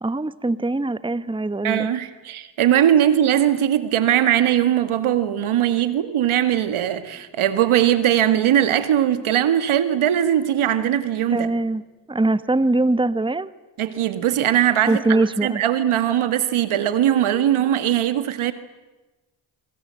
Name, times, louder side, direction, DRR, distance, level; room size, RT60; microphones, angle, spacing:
voice 1, 0.0-1.9 11.3-11.8 12.1-13.5 14.9-15.6, right 2 dB, 10° right, 16 dB, 1.1 m, -22 dB
voice 2, 1.6-11.5 13.8-18.5, right 11 dB, 85° right, 11 dB, 2.0 m, -20 dB
26.0 x 24.0 x 7.7 m, 1.1 s
supercardioid pair, 55°, 48 cm